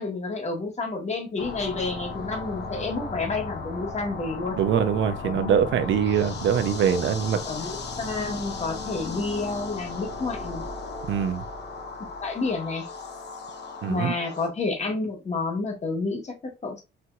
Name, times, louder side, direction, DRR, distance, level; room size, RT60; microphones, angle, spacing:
voice 1, 0.0-4.6 5.2-5.7 7.4-10.6 12.2-12.9 13.9-16.8, left 3 dB, 35° left, 1.4 m, -30 dB
sound 1, 1.4-14.5, left 3 dB, 60° left, 1.0 m, -36 dB
voice 2, 4.6-7.4 11.1-11.4 13.8-14.1, right 8 dB, 70° right, 0.7 m, -23 dB
4.4 x 2.7 x 2.3 m
cardioid pair, 90°, 20 cm